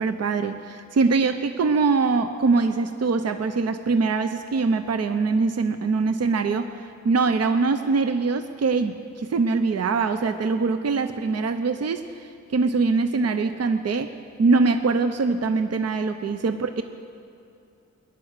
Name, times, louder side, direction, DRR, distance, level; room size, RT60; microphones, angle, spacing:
voice 1, 0.0-14.1 14.4-16.8, right 4 dB, 55° right, 9 dB, 0.8 m, -23 dB
20.0 x 11.0 x 6.6 m, 2.5 s
cardioid pair, 75°, 30 cm